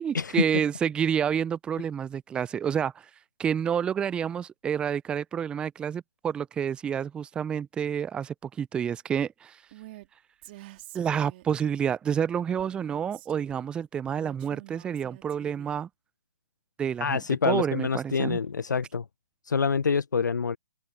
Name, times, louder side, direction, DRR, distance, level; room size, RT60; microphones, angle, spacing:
voice 1, 0.0-2.9 3.4-9.6 10.9-15.9 16.8-18.4, right 8 dB, 10° right, 0.6 m, -29 dB
Female speech woman speaking, 9.7-10.1 10.4-11.7 12.6-13.7 14.2-15.8, right 18 dB, 35° right, 3.7 m, -48 dB
voice 2, 17.0-19.0 19.4-20.6, left 5 dB, 70° left, 0.8 m, -26 dB
open air
figure-of-eight pair, 135°, 10 cm